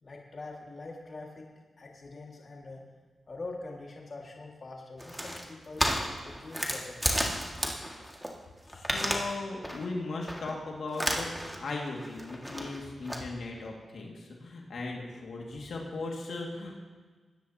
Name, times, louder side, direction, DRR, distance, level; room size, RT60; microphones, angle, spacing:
voice 1, 0.0-1.5 1.8-2.8 3.3-5.9 6.2-7.4, left 3 dB, 50° left, -1 dB, 1.9 m, -44 dB
sound 1, 5.0-8.3 8.6-9.3 9.6-9.9 10.3-10.5 10.9-11.6 11.9-13.2, equal, ahead, 1.9 m, -32 dB
voice 2, 8.7-16.7, left 3 dB, 75° left, -1 dB, 2.1 m, -37 dB
20.5 x 9.8 x 2.9 m, 1.4 s
cardioid pair, 65°, 0 cm